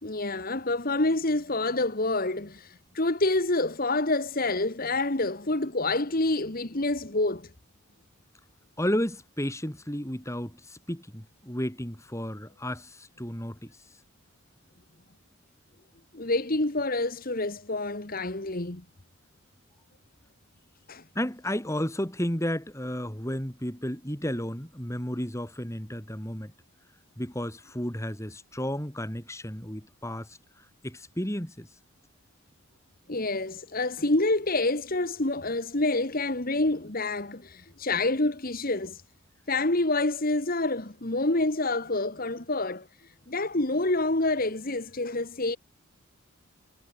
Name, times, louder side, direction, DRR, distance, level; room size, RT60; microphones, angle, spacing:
voice 1, 0.0-7.5 16.1-18.8 20.9-21.0 33.1-39.0 39.5-42.9 43.3-45.6, left 2 dB, 40° left, 1.7 m, -27 dB
voice 2, 8.8-13.7 21.1-26.5 27.2-30.4 30.8-31.7, equal, 15° left, 3.2 m, -32 dB
head